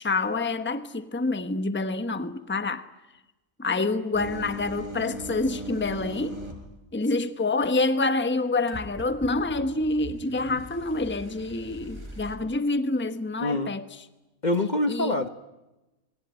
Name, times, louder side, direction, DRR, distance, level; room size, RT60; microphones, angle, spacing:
voice 1, 0.0-2.9 3.6-6.4 6.9-13.9 14.9-15.2, left 3 dB, 10° left, 1.1 m, -27 dB
sound 1, 4.1-6.7 8.7-12.4, right 1 dB, 20° right, 5.4 m, -40 dB
voice 2, 13.4-13.7 14.4-15.3, left 1 dB, 35° left, 1.2 m, -25 dB
27.5 x 23.0 x 9.3 m
omnidirectional pair, 1.5 m